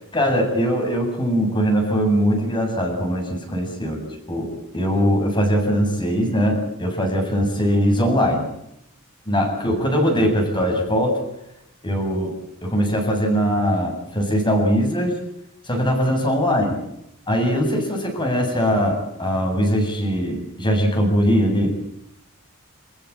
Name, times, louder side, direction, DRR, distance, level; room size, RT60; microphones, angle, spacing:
voice 1, 0.1-8.5 9.3-11.2 11.8-12.3 12.6-15.2 15.6-16.8 17.3-21.8, equal, 25° left, 3 dB, 7.6 m, -21 dB
28.5 x 15.5 x 8.8 m, 0.80 s
head